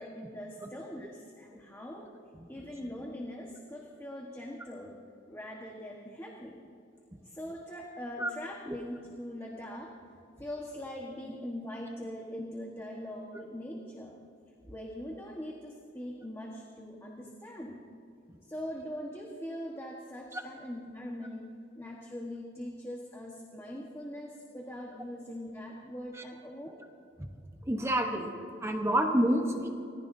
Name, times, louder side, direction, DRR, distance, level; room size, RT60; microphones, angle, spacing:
voice 1, 0.0-2.1 2.5-5.0 5.3-6.7 7.2-9.9 10.4-14.1 14.7-17.9 18.4-26.8, left 1 dB, 15° left, -2 dB, 1.3 m, -42 dB
voice 2, 27.7-28.3 28.6-29.7, right 1 dB, 15° right, 3 dB, 1.0 m, -28 dB
25.0 x 18.5 x 2.7 m, 2.6 s
head